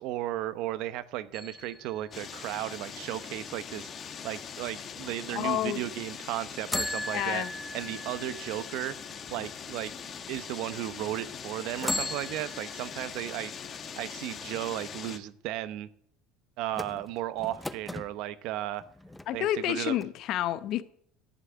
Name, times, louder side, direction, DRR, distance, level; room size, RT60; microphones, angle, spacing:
voice 1, 0.0-3.9 4.2-7.5 7.7-8.9 9.3-9.9 10.3-13.5 14.0-15.9 16.6-18.8 19.3-20.0, right 14 dB, 65° right, 0.8 m, -35 dB
sound 1, 1.3-3.2 6.7-9.8 10.4-10.5 11.7-13.5 16.7-18.1 18.8-19.7 20.0-20.1, left 1 dB, 5° left, 0.5 m, -38 dB
sound 2, 2.1-15.2, left 7 dB, 35° left, 1.1 m, -42 dB
voice 2, 5.3-5.8 7.1-7.5 19.3-20.8, left 12 dB, 55° left, 0.8 m, -29 dB
11.5 x 6.0 x 7.9 m
supercardioid pair, 115°, 0 cm